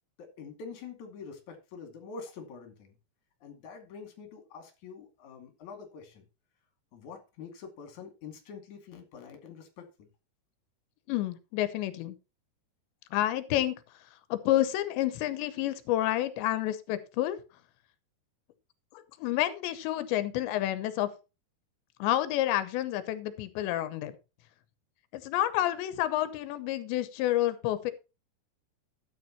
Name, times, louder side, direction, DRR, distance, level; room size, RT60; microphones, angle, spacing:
voice 1, 0.2-3.0 3.4-6.2 6.9-10.1, left 5 dB, 50° left, 5 dB, 3.3 m, -46 dB
voice 2, 11.1-12.2 13.1-17.4 18.9-21.1 22.0-24.2 25.1-27.9, left 13 dB, 90° left, 12 dB, 3.1 m, -29 dB
12.5 x 9.3 x 3.0 m, 0.29 s
omnidirectional pair, 5.0 m